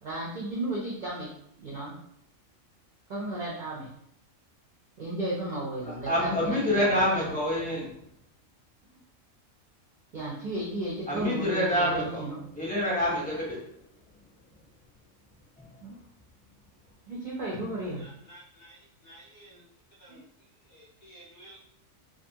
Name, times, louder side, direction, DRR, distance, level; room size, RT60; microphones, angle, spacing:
voice 1, 0.0-1.3 1.6-1.9 3.1-3.9 5.0-7.3 10.1-12.4 15.8-15.9 17.1-18.0 20.1-20.2, right 2 dB, 60° right, -5 dB, 0.5 m, -34 dB
voice 2, 6.1-7.9 11.1-12.2 12.5-13.6, equal, 10° left, -6 dB, 0.6 m, -26 dB
voice 3, 18.0-19.6 20.0-20.2 20.7-21.6, right 1 dB, 50° left, -6 dB, 0.7 m, -53 dB
2.5 x 2.4 x 2.7 m, 0.72 s
omnidirectional pair, 1.4 m